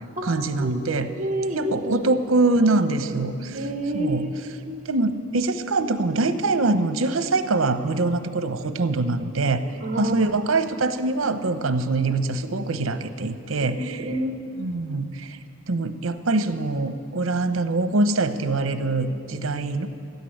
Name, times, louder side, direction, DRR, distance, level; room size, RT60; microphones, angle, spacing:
voice 1, 0.2-1.1 1.5-3.6 3.9-4.3 4.9-9.6 10.0-14.0 14.6-15.4 15.7-19.9, right 3 dB, 75° right, 10 dB, 0.8 m, -24 dB
voice 2, 1.2-1.8 3.5-4.8 9.8-10.3 13.6-14.3 19.0-19.4, right 1 dB, 40° right, 5 dB, 1.2 m, -29 dB
13.5 x 8.3 x 9.9 m, 2.5 s
head